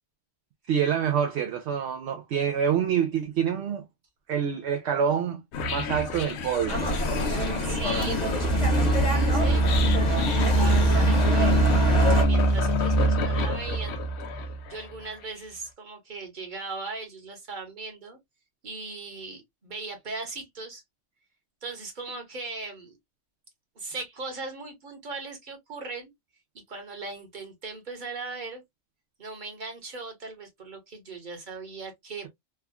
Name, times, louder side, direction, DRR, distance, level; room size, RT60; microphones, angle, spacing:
voice 1, 0.7-3.9 4.3-5.4 5.7-6.9, right 8 dB, 70° right, 0.8 m, -26 dB
sound 1, 5.5-14.7, right 1 dB, 70° left, 0.8 m, -24 dB
sound 2, 6.7-12.2, equal, 35° left, 1.2 m, -27 dB
voice 2, 7.3-11.8 12.1-14.0 14.7-18.2 18.6-20.8 21.6-22.9 23.7-26.1 26.7-28.6 29.2-32.3, right 3 dB, 45° right, 1.3 m, -39 dB
3.5 x 2.2 x 2.2 m
omnidirectional pair, 1.2 m